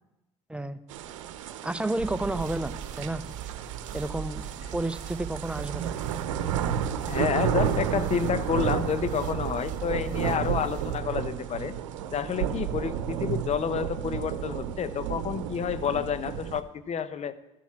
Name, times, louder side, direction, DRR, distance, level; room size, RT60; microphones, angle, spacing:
voice 1, 0.5-0.8 1.6-3.2 3.9-4.4 4.7-6.0, right 1 dB, 5° right, 12 dB, 0.8 m, -31 dB
sound 1, 0.9-16.6, right 9 dB, 90° right, 0.8 m, -32 dB
sound 2, 2.0-11.0, right 8 dB, 55° right, 1.4 m, -39 dB
voice 2, 7.1-11.7 12.1-17.3, left 7 dB, 45° left, 14 dB, 0.9 m, -29 dB
12.5 x 7.3 x 7.4 m, 0.95 s
hypercardioid pair, 70°, 16 cm